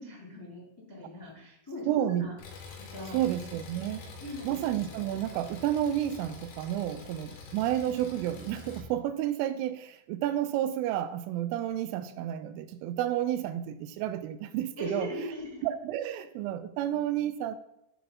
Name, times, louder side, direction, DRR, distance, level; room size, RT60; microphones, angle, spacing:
voice 1, 0.0-2.3 2.7-3.2 4.2-4.5 7.3-7.6 14.8-15.6, left 1 dB, 10° left, 0.9 m, -40 dB
voice 2, 1.9-2.3 3.1-4.1 4.4-15.1 15.6-17.6, right 12 dB, 85° right, 3.1 m, -31 dB
Engine, 2.4-8.8, left 3 dB, 85° left, 4.3 m, -46 dB
10.5 x 4.2 x 5.6 m
omnidirectional pair, 5.6 m